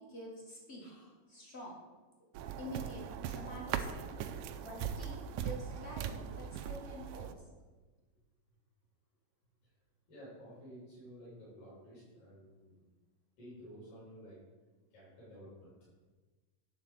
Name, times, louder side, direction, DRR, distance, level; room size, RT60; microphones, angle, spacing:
voice 1, 0.0-0.8 1.3-1.8 2.5-4.1 4.6-7.4, equal, 40° left, -3 dB, 0.8 m, -47 dB
voice 2, 0.8-1.1 10.1-12.8 13.4-14.4 14.9-15.7, equal, 70° left, -9 dB, 5.0 m, -53 dB
sound 1, 2.3-7.3, right 8 dB, 85° right, 1.7 m, -40 dB
10.0 x 4.0 x 7.4 m, 1.3 s
omnidirectional pair, 4.0 m